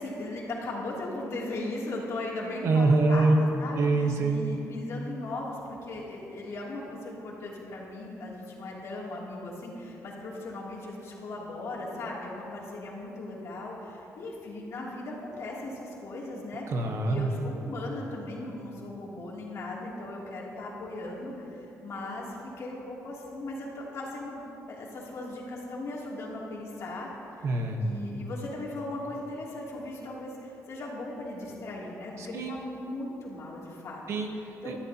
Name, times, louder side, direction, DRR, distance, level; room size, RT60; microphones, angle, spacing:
voice 1, 0.0-16.7 17.0-24.4 24.7-27.1 27.4-27.5 27.8-34.0 34.6-34.7, left 2 dB, 55° left, -4 dB, 2.8 m, -38 dB
voice 2, 2.6-3.4 3.8-4.4 16.7-17.3 27.4-27.9 32.2-32.6 34.1-34.8, right 3 dB, 50° right, 3 dB, 1.2 m, -25 dB
21.0 x 13.0 x 2.9 m, 2.9 s
cardioid pair, 160°, 6 cm